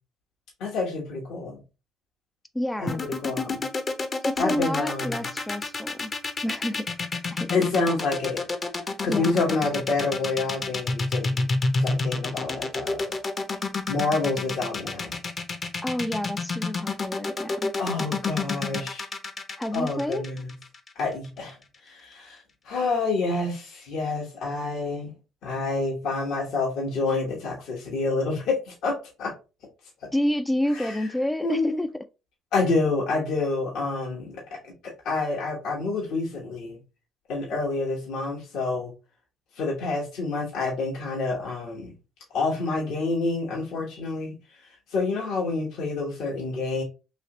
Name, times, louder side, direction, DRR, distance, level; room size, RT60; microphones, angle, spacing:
voice 1, 0.6-1.6 2.8-3.7 4.4-5.2 7.5-8.4 9.0-11.5 11.8-13.2 13.9-15.2 17.8-19.1 19.7-20.5 20.9-21.6 21.8-25.1 25.4-29.3 30.7-31.0 31.4-31.8 32.5-34.7 35.0-36.8 37.3-38.9 39.6-41.9 42.3-44.4 44.6-46.8, left 3 dB, 75° left, 1.1 m, -28 dB
voice 2, 2.5-3.0 4.2-6.1 6.4-6.9 7.3-7.7 9.1-9.3 15.8-17.7 19.6-20.3 30.1-31.9, left 1 dB, 10° left, 0.3 m, -29 dB
sound 1, 2.9-21.0, left 3 dB, 40° left, 0.7 m, -29 dB
3.2 x 2.8 x 3.0 m
supercardioid pair, 70°, 0 cm